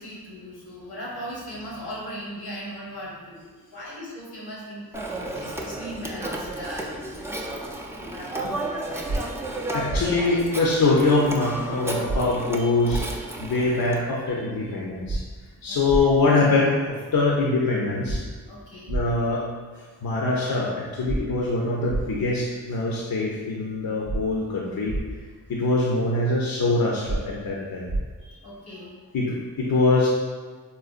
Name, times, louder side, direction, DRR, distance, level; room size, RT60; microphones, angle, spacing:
voice 1, 0.0-4.9 5.3-9.9 12.2-12.7 13.0-13.7 15.7-16.0 18.4-19.0 28.2-29.0, equal, 90° left, -6 dB, 1.0 m, -39 dB
Telephone, 4.9-14.0, right 2 dB, 5° right, 0.3 m, -33 dB
sound 1, 9.1-9.2 9.9-10.0 12.1-12.2 12.9-13.0 15.1-15.2 15.9-16.0 18.1-18.2 18.9-19.0 21.1-21.2 21.9-22.0 24.1-24.2 24.9-25.0 27.1-27.2 27.9-28.0, right 2 dB, 65° right, 0.5 m, -26 dB
voice 2, 9.7-13.0 13.4-15.2 15.6-16.8 17.1-18.2 18.9-19.4 20.0-24.9 25.5-27.8 29.1-30.1, left 3 dB, 65° left, -4 dB, 0.6 m, -23 dB
3.8 x 2.2 x 2.4 m, 1.4 s
cardioid pair, 50°, 38 cm